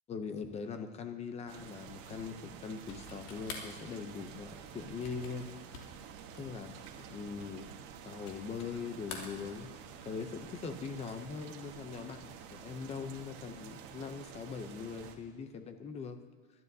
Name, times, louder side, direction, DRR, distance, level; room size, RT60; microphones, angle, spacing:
voice 1, 0.1-5.5 6.3-6.7 7.1-7.7 8.1-16.2, left 5 dB, 15° left, 8 dB, 0.6 m, -41 dB
sound 1, 1.5-15.2, right 7 dB, 55° right, 1.5 m, -50 dB
sound 2, 2.8-8.8 9.0-10.0, left 5 dB, 75° left, 2.8 m, -49 dB
22.5 x 12.5 x 2.7 m, 1.4 s
supercardioid pair, 160°, 45 cm